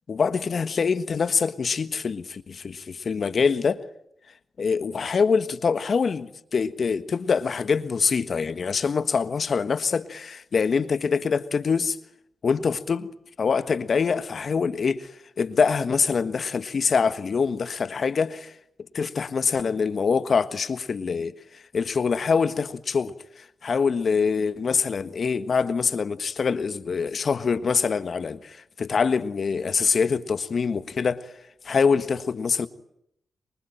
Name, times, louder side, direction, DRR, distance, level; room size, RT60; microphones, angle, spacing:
voice 1, 0.1-3.8 4.6-12.0 12.4-13.1 13.4-15.1 15.4-18.5 18.9-21.3 21.7-31.3 31.6-32.7, left 5 dB, 60° left, 1.5 m, -24 dB
28.0 x 24.0 x 8.9 m
supercardioid pair, 40°, 0 cm